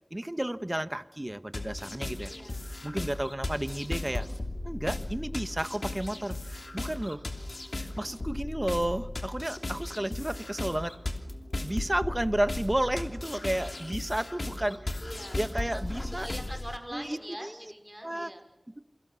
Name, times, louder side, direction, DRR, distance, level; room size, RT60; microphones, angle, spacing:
voice 1, 0.1-2.3 2.8-4.3 4.6-7.2 7.8-11.0 11.6-15.0 15.4-16.3 16.9-17.6 18.0-18.3, right 1 dB, 25° right, 12 dB, 1.2 m, -32 dB
sound 1, 1.5-16.8, left 2 dB, 70° left, 3.0 m, -36 dB
voice 2, 2.3-2.8 6.7-7.7 10.0-10.4 14.3-18.5, equal, 10° right, 5 dB, 5.3 m, -45 dB
28.5 x 24.0 x 7.0 m, 0.98 s
wide cardioid pair, 55°, 0 cm